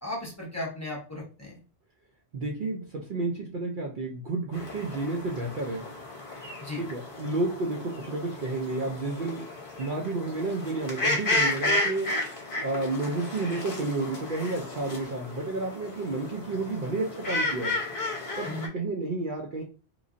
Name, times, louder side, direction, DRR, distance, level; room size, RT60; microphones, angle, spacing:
voice 1, 0.0-1.6 6.6-6.8 18.4-18.7, left 1 dB, 15° left, 0.9 m, -36 dB
voice 2, 2.3-5.9 6.8-12.2 12.6-17.8 18.4-19.6, right 2 dB, 55° right, 0.6 m, -31 dB
sound 1, 4.5-18.7, left 2 dB, 55° left, 1.0 m, -33 dB
3.1 x 2.6 x 2.4 m
omnidirectional pair, 1.1 m